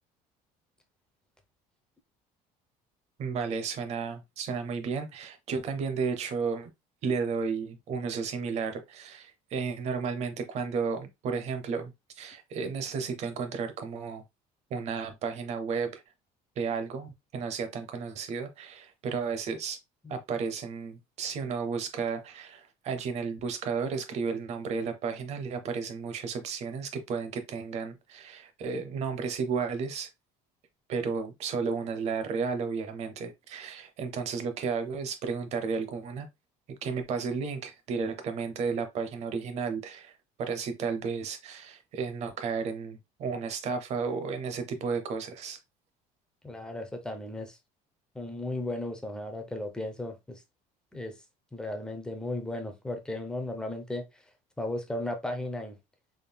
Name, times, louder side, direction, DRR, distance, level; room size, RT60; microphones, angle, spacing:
voice 1, 3.2-6.7 7.0-14.2 14.7-16.0 16.6-19.8 20.1-30.1 30.9-36.3 36.8-40.1 40.4-45.6, right 5 dB, 45° right, 0.8 m, -33 dB
voice 2, 46.4-47.6 48.1-50.4 50.9-51.1 51.5-54.0 54.6-55.8, left 1 dB, 5° left, 0.6 m, -35 dB
3.7 x 3.5 x 2.2 m
cardioid pair, 160°, 16 cm